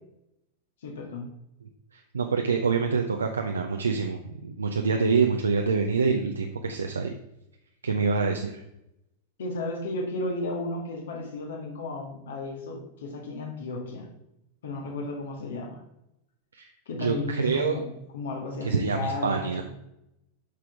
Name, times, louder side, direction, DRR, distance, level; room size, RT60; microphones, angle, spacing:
voice 1, 0.8-1.3 9.4-14.1 14.6-15.8 16.9-17.9 18.1-19.6, left 2 dB, 60° left, 2 dB, 1.6 m, -34 dB
voice 2, 1.9-7.1 7.8-8.6 16.5-16.7 17.0-17.8 18.6-19.6, right 5 dB, 75° right, 4 dB, 0.6 m, -26 dB
8.3 x 6.0 x 3.5 m, 0.86 s
figure-of-eight pair, 90°, 0 cm